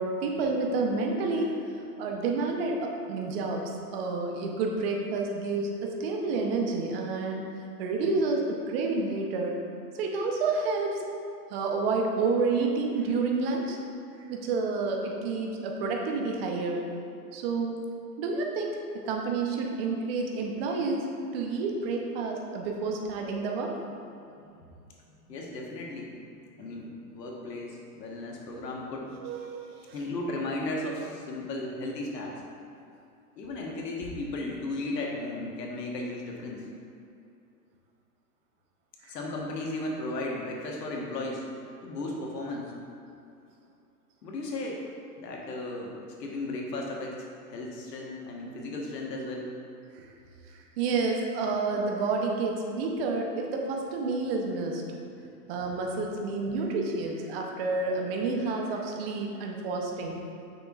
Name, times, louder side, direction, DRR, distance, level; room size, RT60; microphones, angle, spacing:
voice 1, 0.0-1.6 2.0-7.5 7.8-9.6 10.0-11.0 11.5-13.8 14.3-16.9 17.3-17.8 18.2-21.1 21.3-23.7 29.2-30.0 39.0-39.1 50.0-50.1 50.5-54.8 55.5-60.2, right 3 dB, 40° right, 1 dB, 0.8 m, -29 dB
voice 2, 25.1-26.2 26.5-29.1 29.9-32.4 33.4-36.7 39.0-41.4 41.8-42.7 44.2-44.9 45.2-45.9 46.2-49.5, left 2 dB, 80° left, -1 dB, 1.4 m, -35 dB
6.7 x 6.0 x 2.4 m, 2.6 s
hypercardioid pair, 145°, 48 cm